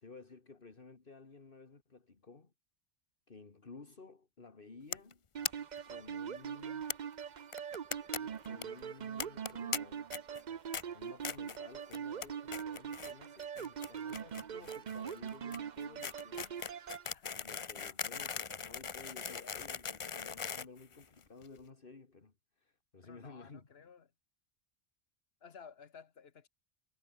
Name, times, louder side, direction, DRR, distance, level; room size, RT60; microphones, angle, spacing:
voice 1, 0.0-2.5 3.3-5.2 5.8-7.0 8.1-10.1 10.9-16.6 17.3-23.9, left 4 dB, 60° left, 2.2 m, -54 dB
sound 1, 4.9-5.1 5.4-5.5 5.8-5.9 6.1-6.2 6.9-7.0 7.5-8.2 8.4-8.6 9.2-9.8 10.1-10.4 10.7-10.8 11.2-11.6 11.9-12.3 12.5-13.1 13.4-21.4, left 6 dB, 35° left, 0.6 m, -40 dB
sound 2, 5.3-17.1, right 7 dB, 50° right, 0.8 m, -42 dB
voice 2, 17.1-17.7 23.0-24.1 25.4-26.5, left 6 dB, 75° left, 1.4 m, -55 dB
omnidirectional pair, 1.1 m